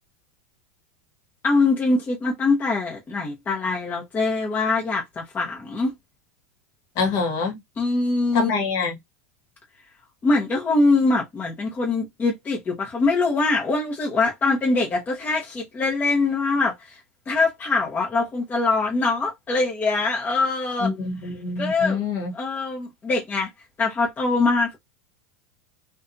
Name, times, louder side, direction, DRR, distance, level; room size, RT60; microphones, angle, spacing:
voice 1, 1.4-5.9 7.8-8.5 10.2-17.0 17.3-20.9 21.6-22.0 22.3-23.5 23.8-24.8, left 3 dB, 20° left, 0.9 m, -23 dB
voice 2, 7.0-7.6 8.3-9.0 20.8-22.3, left 4 dB, 50° left, 1.2 m, -25 dB
2.6 x 2.3 x 2.6 m
supercardioid pair, 125°, 8 cm